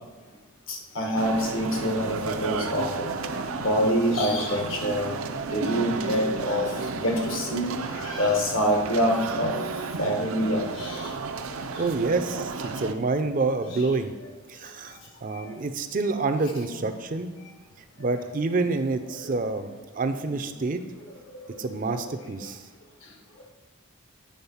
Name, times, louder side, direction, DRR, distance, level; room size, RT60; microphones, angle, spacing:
voice 1, 0.7-3.1 3.6-5.2 5.5-6.7 6.9-7.7 8.0-9.5 10.0-11.0 13.7-13.9, equal, 70° left, 1 dB, 1.4 m, -25 dB
sound 1, 1.2-12.9, right 4 dB, 85° right, 0.6 m, -33 dB
voice 2, 11.8-14.1 14.5-17.3 18.0-20.8 21.6-22.6, right 3 dB, 40° right, 9 dB, 0.4 m, -27 dB
8.6 x 3.7 x 5.6 m, 1.2 s
head